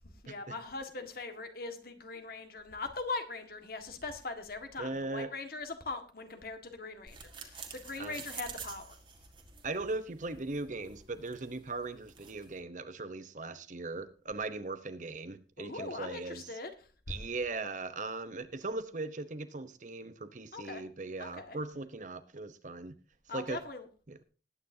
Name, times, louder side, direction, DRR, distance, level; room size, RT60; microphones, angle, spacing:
voice 1, 0.2-9.0 15.6-16.7 20.5-20.8 21.2-21.6 23.3-23.9, left 3 dB, 55° left, 6 dB, 1.7 m, -41 dB
voice 2, 4.8-5.3 8.0-8.2 9.6-16.5 17.1-23.0 23.3-23.6 24.1-24.2, right 3 dB, 45° right, 11 dB, 0.9 m, -39 dB
sound 1, 7.1-12.6, right 6 dB, 30° right, 1.7 m, -49 dB
19.5 x 9.2 x 2.8 m, 0.36 s
head